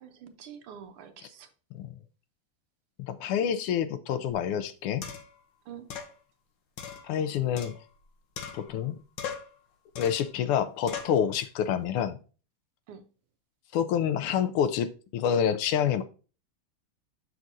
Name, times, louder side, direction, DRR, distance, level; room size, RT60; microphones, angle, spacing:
voice 1, 0.0-1.5 5.7-5.9 12.9-13.0, right 8 dB, 80° right, 8 dB, 1.6 m, -46 dB
voice 2, 3.0-5.0 7.0-7.7 8.5-8.9 10.0-12.2 13.7-16.0, left 8 dB, 85° left, 12 dB, 1.5 m, -27 dB
sound 1, 4.3-4.4 5.0-5.4 5.9-6.1 6.8-8.0 8.4-8.9 9.2-9.6 10.0-10.3 10.9-11.2, left 7 dB, 65° left, 1.4 m, -39 dB
7.4 x 6.0 x 2.6 m, 0.36 s
omnidirectional pair, 2.4 m